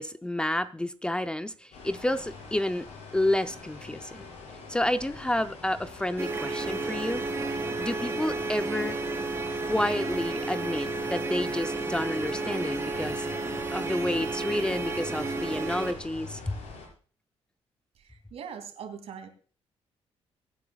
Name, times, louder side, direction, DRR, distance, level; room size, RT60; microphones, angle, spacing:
voice 1, 0.0-2.9 3.1-4.2 4.7-9.0 9.6-13.3 13.7-16.5, left 1 dB, 10° left, 0.5 m, -30 dB
sound 1, 1.7-16.9, left 4 dB, 80° left, 6.0 m, -44 dB
sound 2, 6.2-15.9, right 3 dB, 20° right, 3.8 m, -32 dB
voice 2, 18.0-19.3, right 7 dB, 70° right, 2.8 m, -41 dB
23.5 x 9.4 x 2.3 m
cardioid pair, 130°, 11 cm